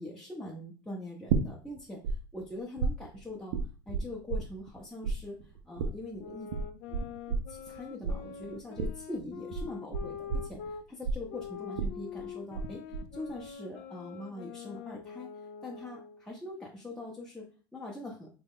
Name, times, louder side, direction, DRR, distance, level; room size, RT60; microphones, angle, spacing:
voice 1, 0.0-3.6 3.9-6.5 7.5-12.8 13.1-15.3 15.6-18.4, left 2 dB, 5° left, -4 dB, 0.7 m, -43 dB
sound 1, 1.3-2.2 2.4-4.8 5.0-12.7 12.9-13.5, right 5 dB, 70° right, 0.5 m, -32 dB
sound 2, 6.2-10.8 11.3-16.3, left 8 dB, 55° left, 0.4 m, -44 dB
3.0 x 2.2 x 3.5 m, 0.37 s
hypercardioid pair, 95°, 12 cm